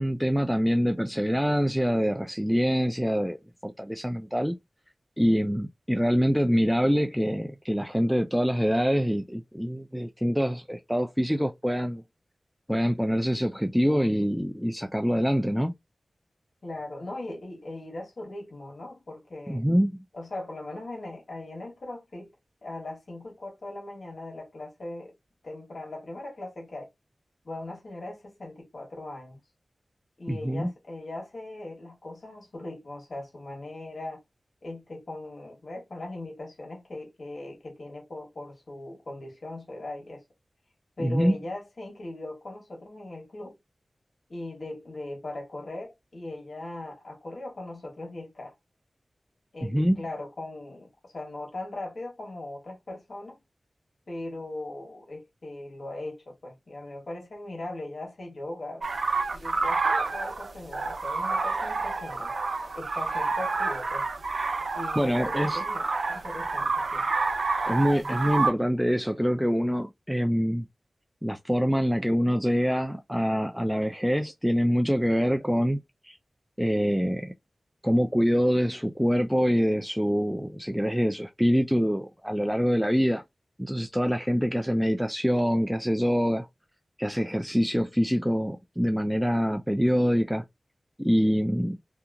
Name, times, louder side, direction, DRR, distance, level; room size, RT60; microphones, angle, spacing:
voice 1, 0.0-3.4 3.6-4.6 5.2-12.0 12.7-15.7 19.5-20.0 30.3-30.7 41.0-41.4 49.6-50.0 65.0-65.6 67.7-70.6 71.2-76.2 76.6-77.3 77.8-83.2 83.6-86.5 87.0-90.4 91.0-91.8, equal, ahead, 0.3 m, -25 dB
voice 2, 16.6-19.6 20.1-22.3 22.6-25.1 25.4-26.9 27.4-29.4 30.2-34.2 34.6-40.2 41.0-43.6 44.3-48.5 49.5-53.4 54.1-58.8 59.3-62.3 62.7-64.1 64.7-67.1, left 2 dB, 70° left, 1.3 m, -39 dB
sound 1, 58.8-68.5, right 3 dB, 80° right, 0.5 m, -28 dB
2.8 x 2.4 x 2.4 m
wide cardioid pair, 70°, 0 cm